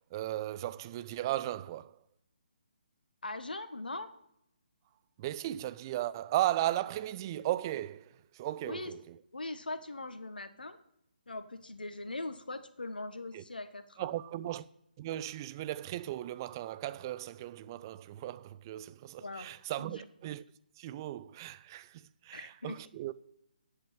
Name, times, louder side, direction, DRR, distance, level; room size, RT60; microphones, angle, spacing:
voice 1, 0.1-2.0 5.2-9.0 13.3-13.4 14.0-14.7 15.0-20.4 20.8-23.1, right 14 dB, 25° right, 0.5 m, -36 dB
voice 2, 3.2-4.1 8.6-8.9 9.3-10.8 11.3-14.1 19.2-19.5 19.8-20.1 22.3-22.8, left 2 dB, 70° left, 1.4 m, -41 dB
10.5 x 8.1 x 8.8 m
figure-of-eight pair, 140°, 5 cm